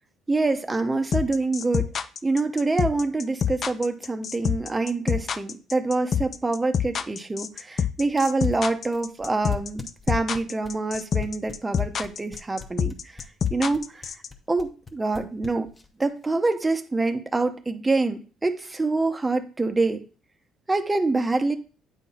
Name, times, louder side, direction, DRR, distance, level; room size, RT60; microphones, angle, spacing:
voice 1, 0.3-1.9 2.2-13.2 13.5-14.1 14.5-15.7 16.0-20.0 20.7-21.6, right 3 dB, 15° right, 6 dB, 0.7 m, -26 dB
sound 1, 1.1-14.3, left 8 dB, 40° left, 0.4 m, -26 dB
sound 2, 8.1-16.0, left 5 dB, 20° left, 0.8 m, -41 dB
9.0 x 3.8 x 4.2 m, 0.37 s
cardioid pair, 135°, 0 cm